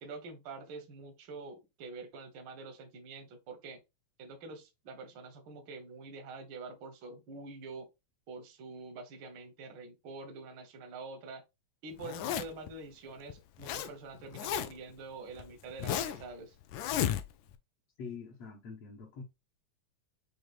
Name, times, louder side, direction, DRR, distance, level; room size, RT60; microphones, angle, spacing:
voice 1, 0.0-3.8 4.2-7.9 8.3-11.4 11.8-16.6, right 3 dB, 65° right, 1.1 m, -46 dB
Zipper (clothing), 12.0-12.7 13.3-13.9 14.1-14.9 15.4-16.3 16.7-17.5, left 10 dB, 80° left, 1.9 m, -33 dB
voice 2, 18.0-19.2, left 5 dB, 65° left, 1.9 m, -44 dB
6.5 x 2.8 x 2.4 m
omnidirectional pair, 3.4 m